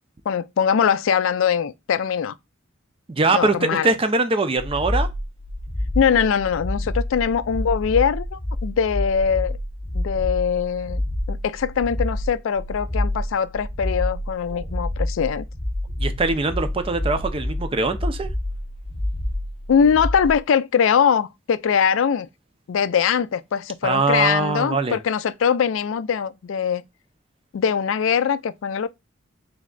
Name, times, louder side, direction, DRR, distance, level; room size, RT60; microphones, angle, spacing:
voice 1, 0.3-2.3 3.3-3.9 6.0-9.6 9.9-11.0 11.3-15.4 19.7-22.3 22.7-26.8 27.5-28.9, left 7 dB, 70° left, 0.3 m, -22 dB
voice 2, 3.1-5.1 14.5-14.7 16.0-18.3 23.8-25.0, right 3 dB, 25° right, 0.5 m, -22 dB
sound 1, 4.6-20.4, left 1 dB, 20° left, 0.8 m, -28 dB
3.5 x 3.2 x 3.7 m
head